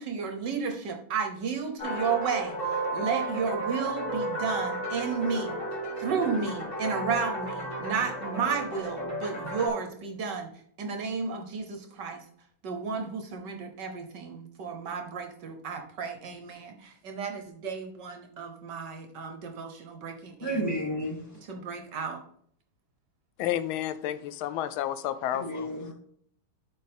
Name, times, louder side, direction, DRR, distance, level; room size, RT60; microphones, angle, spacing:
voice 1, 0.0-5.6 6.0-10.5 10.8-12.2 12.6-20.7 21.5-22.2, right 5 dB, 65° right, 1.5 m, -33 dB
sound 1, 1.8-9.7, right 2 dB, 25° left, 2.6 m, -33 dB
voice 2, 20.4-21.4 25.3-25.9, equal, 10° left, 2.9 m, -32 dB
voice 3, 23.4-25.7, left 11 dB, 85° left, 1.4 m, -31 dB
11.5 x 4.2 x 3.5 m
omnidirectional pair, 2.2 m